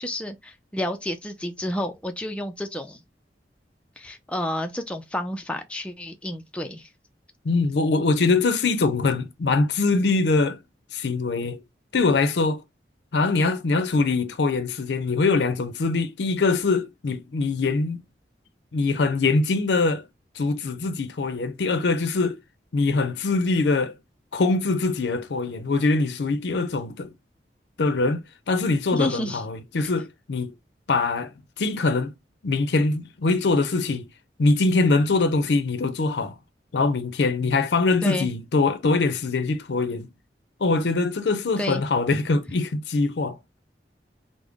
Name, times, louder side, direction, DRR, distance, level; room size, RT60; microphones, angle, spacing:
voice 1, 0.0-3.0 4.0-6.9 28.9-29.4 38.0-38.3 41.6-41.8, left 1 dB, 5° left, 0.4 m, -30 dB
voice 2, 7.4-10.6 10.9-11.6 11.9-12.6 13.1-18.0 18.7-20.1 20.3-22.4 22.7-23.9 24.3-27.1 27.8-30.5 30.9-32.1 32.4-34.1 34.4-36.3 36.7-40.1 40.6-43.4, left 3 dB, 75° left, 0.5 m, -23 dB
3.5 x 2.0 x 3.5 m
head